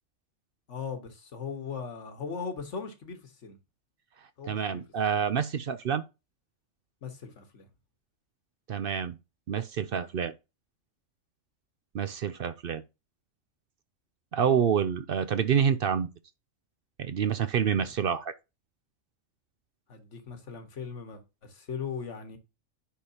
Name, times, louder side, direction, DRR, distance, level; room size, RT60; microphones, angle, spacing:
voice 1, 0.7-3.6 4.4-4.8 7.0-7.7 17.7-17.9 19.9-22.4, left 6 dB, 70° left, 1.7 m, -39 dB
voice 2, 4.5-6.0 8.7-9.2 9.5-10.3 11.9-12.8 14.3-16.1 17.0-18.3, right 7 dB, 60° right, 0.7 m, -27 dB
10.0 x 5.1 x 2.8 m
omnidirectional pair, 1.3 m